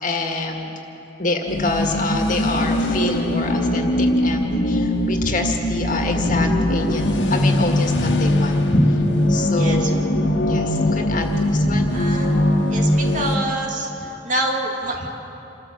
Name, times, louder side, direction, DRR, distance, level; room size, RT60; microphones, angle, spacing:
voice 1, 0.0-0.7 1.2-9.0 9.3-10.0 10.5-12.0, left 2 dB, 45° left, 2 dB, 1.9 m, -26 dB
sound 1, 1.5-13.4, left 1 dB, 65° left, 1.6 m, -21 dB
voice 2, 9.6-9.9 10.5-10.7 11.9-12.3 12.7-15.1, right 1 dB, 40° right, 0 dB, 2.5 m, -27 dB
27.5 x 14.0 x 7.2 m, 3.0 s
head